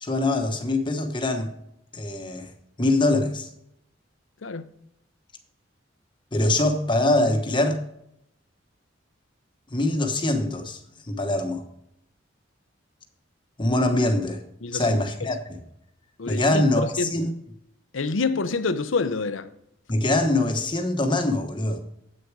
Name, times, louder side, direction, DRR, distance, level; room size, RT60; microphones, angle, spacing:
voice 1, 0.0-1.5 1.9-2.5 2.8-3.5 6.3-7.8 9.7-10.8 11.1-11.6 13.6-14.4 14.7-15.6 16.3-17.3 19.9-21.8, left 2 dB, 25° left, 1.1 m, -23 dB
voice 2, 14.6-15.0 16.2-17.1 17.9-19.5, left 4 dB, 85° left, 0.7 m, -27 dB
8.5 x 6.6 x 4.7 m
head